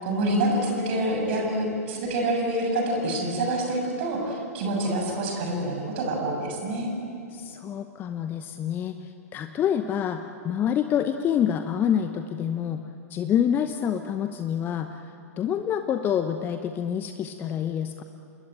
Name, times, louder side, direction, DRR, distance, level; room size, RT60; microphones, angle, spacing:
voice 1, 0.0-6.9, right 1 dB, 45° right, 1 dB, 7.4 m, -27 dB
voice 2, 7.3-12.8 13.1-15.1 15.4-18.0, left 9 dB, 25° left, 8 dB, 0.9 m, -27 dB
28.0 x 20.5 x 9.2 m, 2.8 s
figure-of-eight pair, 105°, 9 cm